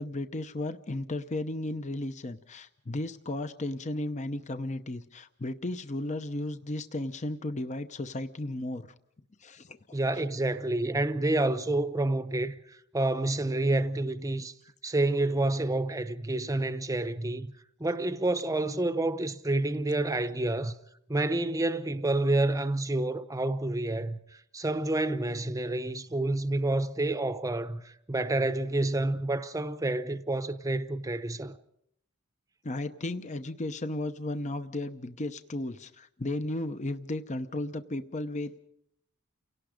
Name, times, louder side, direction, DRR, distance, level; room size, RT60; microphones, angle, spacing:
voice 1, 0.0-8.9 9.4-10.0 14.4-14.5 32.6-38.6, left 1 dB, 35° left, 0.8 m, -34 dB
voice 2, 9.9-12.6 12.9-14.5 14.8-17.5 17.8-20.7 21.1-24.2 24.5-31.5, right 2 dB, 15° right, 0.8 m, -28 dB
29.5 x 18.0 x 5.1 m
head